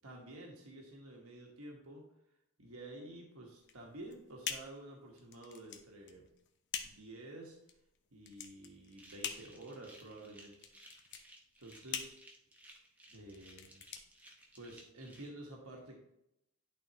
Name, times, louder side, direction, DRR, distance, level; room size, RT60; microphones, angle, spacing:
voice 1, 0.0-2.0 2.6-6.3 6.8-7.6 8.1-10.7 11.1-11.2 11.6-12.1 13.1-13.8 14.5-16.0, right 1 dB, 85° right, 0 dB, 1.4 m, -50 dB
sound 1, 3.6-14.9, left 8 dB, 55° left, 0.7 m, -46 dB
sound 2, 8.9-15.3, right 1 dB, 5° right, 0.9 m, -59 dB
11.5 x 4.1 x 2.9 m, 0.81 s
head